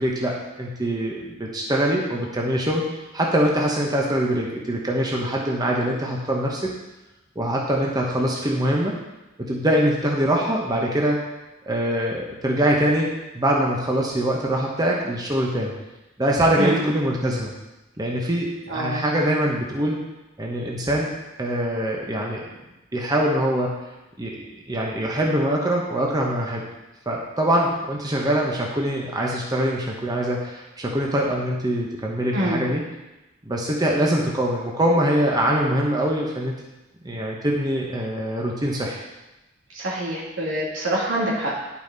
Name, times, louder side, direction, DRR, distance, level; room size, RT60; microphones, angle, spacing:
voice 1, 0.0-2.9 3.1-6.7 7.4-9.0 9.4-11.2 11.7-15.7 16.2-17.5 18.0-20.0 20.4-21.1 21.4-22.4 22.9-23.7 24.2-26.6 27.1-32.8 33.4-36.6 37.0-39.0, right 1 dB, 20° right, -2 dB, 0.9 m, -23 dB
voice 2, 18.7-19.1 32.3-32.6 39.7-41.6, right 1 dB, 80° right, -4 dB, 2.4 m, -25 dB
10.5 x 5.8 x 3.9 m, 1.0 s
head